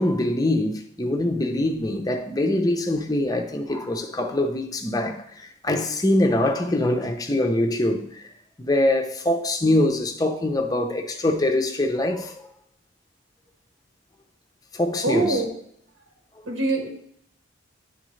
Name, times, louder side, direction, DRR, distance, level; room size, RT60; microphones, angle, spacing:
voice 1, 0.0-8.3 8.6-12.4 14.7-15.4, left 1 dB, 20° left, 0.6 m, -23 dB
voice 2, 15.0-15.5 16.5-16.9, right 2 dB, 85° right, 1.4 m, -23 dB
10.0 x 3.7 x 3.2 m
head